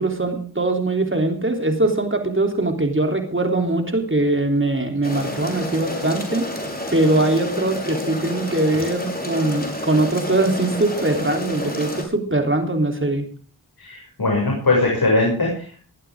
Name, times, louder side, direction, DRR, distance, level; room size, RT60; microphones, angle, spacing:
voice 1, 0.0-6.5 6.9-13.3, right 2 dB, 35° right, 4 dB, 3.5 m, -21 dB
sound 1, 5.0-12.0, left 1 dB, 25° left, 5.7 m, -30 dB
voice 2, 13.8-15.8, left 2 dB, 70° left, -1 dB, 7.0 m, -20 dB
20.0 x 14.5 x 3.7 m, 0.41 s
wide cardioid pair, 65°, 37 cm